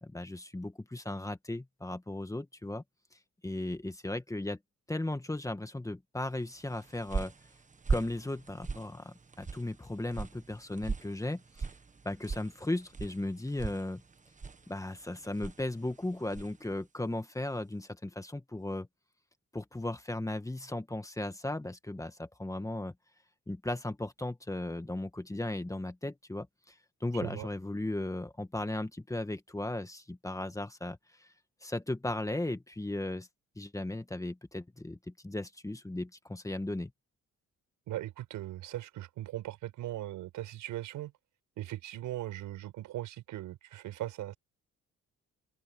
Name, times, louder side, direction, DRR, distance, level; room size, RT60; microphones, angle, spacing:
voice 1, 0.0-2.8 3.4-4.6 4.9-7.3 7.9-11.7 12.0-14.0 14.7-18.9 19.5-22.9 23.5-26.7 27.0-31.3 31.6-33.3 33.6-36.9, left 1 dB, 10° left, 1.8 m, -36 dB
sound 1, 6.6-16.7, right 4 dB, 25° right, 1.4 m, -40 dB
voice 2, 37.9-41.1 41.6-44.4, right 14 dB, 90° right, 6.0 m, -39 dB
open air
cardioid pair, 90°, 30 cm